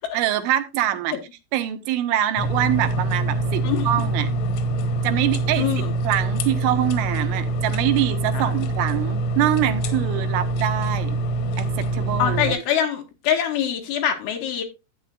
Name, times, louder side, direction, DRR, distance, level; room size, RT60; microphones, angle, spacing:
voice 1, 0.1-1.2 1.5-4.3 5.0-5.7 6.0-11.2 11.6-11.7 11.9-12.5, right 12 dB, 85° right, 3.3 m, -24 dB
sound 1, 2.4-12.5, right 2 dB, 90° left, 3.6 m, -25 dB
voice 2, 3.6-4.0 5.6-5.9 8.3-8.5 12.2-14.6, left 9 dB, 65° left, 3.2 m, -24 dB
13.0 x 8.4 x 2.4 m
omnidirectional pair, 5.5 m